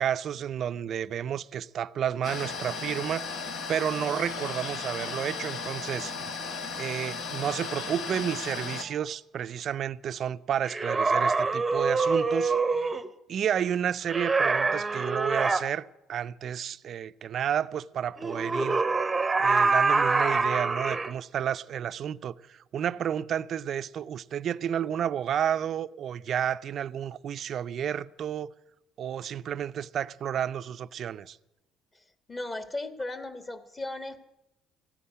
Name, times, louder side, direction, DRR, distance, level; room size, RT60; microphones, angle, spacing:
voice 1, 0.0-3.3 3.7-6.1 6.8-12.6 13.3-18.8 19.4-28.5 29.0-31.4, right 9 dB, 50° right, 0.5 m, -31 dB
sound 1, 2.2-8.8, left 5 dB, 65° left, 1.5 m, -35 dB
sound 2, 10.7-13.1 14.1-15.6 18.2-21.1, right 4 dB, 15° right, 0.8 m, -25 dB
voice 2, 32.3-34.2, left 2 dB, 20° left, 1.3 m, -36 dB
15.0 x 9.8 x 9.4 m
cardioid pair, 135°, 0 cm